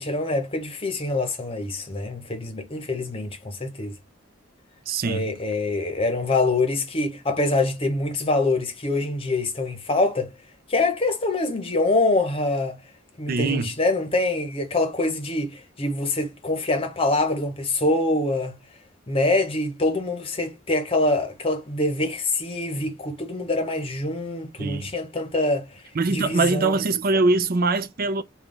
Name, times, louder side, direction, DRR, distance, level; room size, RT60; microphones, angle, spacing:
voice 1, 0.0-4.0 5.0-10.3 10.7-12.8 13.2-18.6 19.1-25.7 26.1-26.7, left 2 dB, 30° left, 0.9 m, -25 dB
voice 2, 4.9-5.3 13.3-13.7 24.6-24.9 25.9-28.2, right 3 dB, 45° right, 0.5 m, -23 dB
3.3 x 2.4 x 3.8 m
head